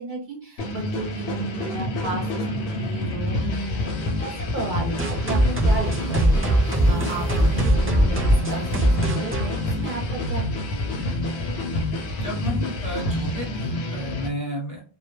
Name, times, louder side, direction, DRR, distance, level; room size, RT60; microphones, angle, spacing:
voice 1, 0.0-10.8, right 3 dB, 55° right, 0 dB, 0.7 m, -34 dB
sound 1, 0.6-14.3, left 1 dB, 85° left, 0.8 m, -27 dB
sound 2, 5.0-10.4, right 1 dB, 20° right, 0.3 m, -22 dB
sound 3, 5.0-8.8, right 1 dB, 85° right, 0.9 m, -40 dB
voice 2, 12.1-14.8, equal, 20° left, -3 dB, 0.7 m, -32 dB
2.2 x 2.1 x 3.0 m, 0.38 s
omnidirectional pair, 1.0 m